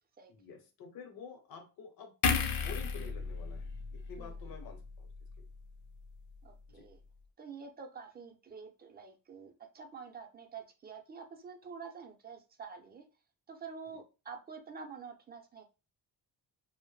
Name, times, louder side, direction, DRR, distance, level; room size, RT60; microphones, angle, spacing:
voice 1, 0.3-2.2 2.5-5.1 6.7-6.9 13.8-14.0, left 5 dB, 75° left, 4 dB, 0.8 m, -50 dB
sound 1, 2.2-5.6 5.9-6.1, left 5 dB, 55° left, 0.5 m, -35 dB
voice 2, 4.2-4.5 6.4-7.0 7.4-13.1 13.5-15.6, right 5 dB, 25° right, 4 dB, 0.5 m, -48 dB
2.1 x 2.1 x 3.0 m, 0.30 s
cardioid pair, 105°, 36 cm